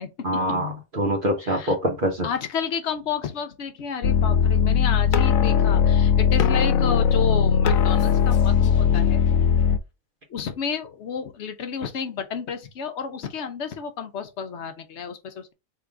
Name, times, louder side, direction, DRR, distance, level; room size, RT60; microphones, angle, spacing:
voice 1, 0.2-2.3, equal, 45° right, 1.0 m, -24 dB
voice 2, 1.4-1.7 2.2-9.2 10.3-15.5, left 7 dB, 60° left, 1.0 m, -31 dB
sound 1, 4.0-9.8, left 7 dB, 85° left, 1.0 m, -19 dB
3.6 x 2.9 x 4.6 m
omnidirectional pair, 1.4 m